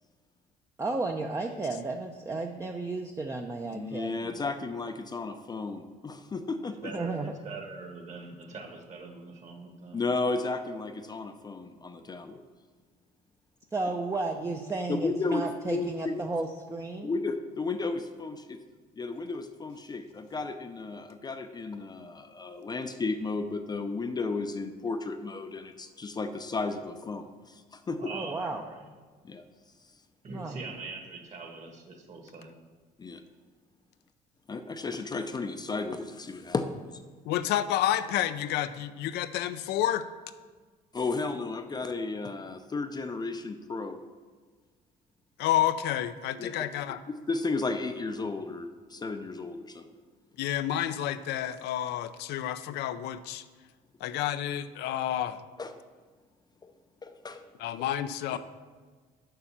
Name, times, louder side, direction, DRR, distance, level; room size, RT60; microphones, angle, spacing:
voice 1, 0.8-4.1 6.9-7.3 13.7-17.1 28.1-28.6 30.3-30.6, right 3 dB, 15° right, 4 dB, 0.6 m, -33 dB
voice 2, 3.7-6.9 9.9-12.4 14.9-16.1 17.0-18.6 19.0-28.1 29.2-29.4 33.0-33.2 34.5-36.7 40.9-44.0 46.4-46.6 47.1-49.9 55.6-55.7 56.6-56.7 57.0-57.4 58.3-58.4, left 3 dB, 25° left, 7 dB, 0.5 m, -33 dB
voice 3, 6.8-10.0 28.0-28.9 30.2-32.6, right 3 dB, 45° right, 3 dB, 1.7 m, -43 dB
voice 4, 37.3-40.0 45.4-47.0 50.4-53.4 54.0-55.4 57.6-58.4, left 12 dB, 80° left, 11 dB, 0.5 m, -29 dB
6.8 x 5.6 x 7.3 m, 1.5 s
cardioid pair, 110°, 17 cm